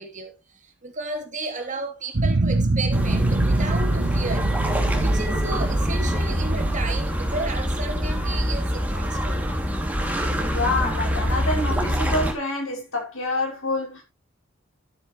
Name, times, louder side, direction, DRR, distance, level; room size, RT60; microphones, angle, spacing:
voice 1, 0.0-4.5 4.9-9.5, right 3 dB, 40° right, 3.0 m, -33 dB
sound 1, 2.1-9.3, right 2 dB, 55° right, 0.8 m, -25 dB
sound 2, 2.9-12.3, equal, 10° right, 2.6 m, -25 dB
voice 2, 10.5-14.0, left 2 dB, 75° left, 5.9 m, -27 dB
12.0 x 9.9 x 3.2 m
head